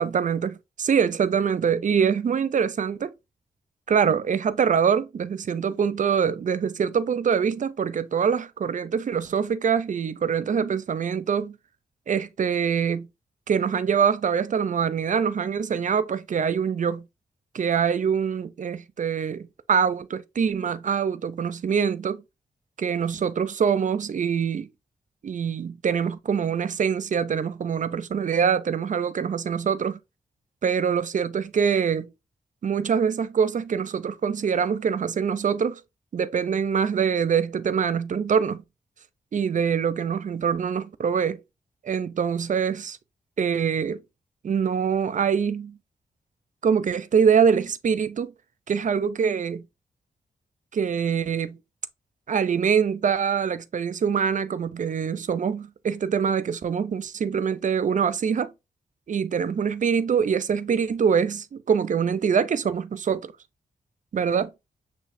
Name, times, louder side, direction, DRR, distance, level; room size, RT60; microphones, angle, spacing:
voice 1, 0.0-3.1 3.9-11.6 12.1-13.1 13.5-17.0 17.5-22.2 22.8-24.7 25.2-30.0 30.6-32.1 32.6-35.8 36.1-38.6 39.3-41.4 41.8-43.0 43.4-44.0 44.4-45.8 46.6-48.3 48.7-49.6 50.7-51.6 52.3-58.5 59.1-63.3 64.1-64.5, right 7 dB, 55° right, 0.6 m, -24 dB
6.3 x 2.8 x 2.7 m
cardioid pair, 50°, 15 cm